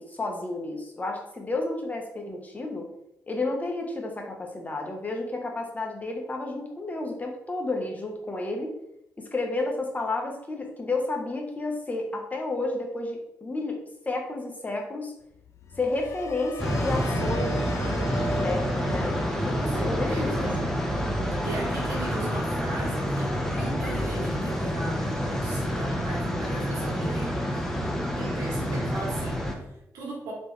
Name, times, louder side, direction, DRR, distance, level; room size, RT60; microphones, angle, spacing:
voice 1, 0.0-2.9 3.3-8.7 9.2-13.8 14.0-15.1 15.8-20.3, left 2 dB, 25° left, 2 dB, 1.1 m, -31 dB
sound 1, 15.3-25.4 25.8-26.2, right 1 dB, 60° left, 0.4 m, -40 dB
sound 2, 16.6-29.5, equal, 5° left, 0.9 m, -28 dB
voice 2, 19.5-20.6 21.4-27.4 28.0-30.3, right 2 dB, 90° right, -4 dB, 1.2 m, -38 dB
4.2 x 3.3 x 3.2 m, 0.84 s
cardioid pair, 65°, 6 cm